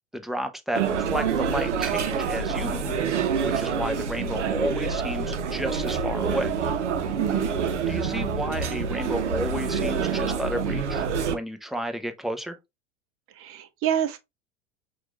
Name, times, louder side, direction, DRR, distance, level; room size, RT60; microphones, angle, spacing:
voice 1, 0.1-2.9 3.4-6.5 7.9-12.6, equal, ahead, 0.6 m, -32 dB
sound 1, 0.8-11.3, right 6 dB, 75° right, 0.8 m, -27 dB
voice 2, 7.2-7.5 13.4-14.2, right 9 dB, 35° right, 0.9 m, -27 dB
6.0 x 2.5 x 3.3 m
figure-of-eight pair, 80°, 36 cm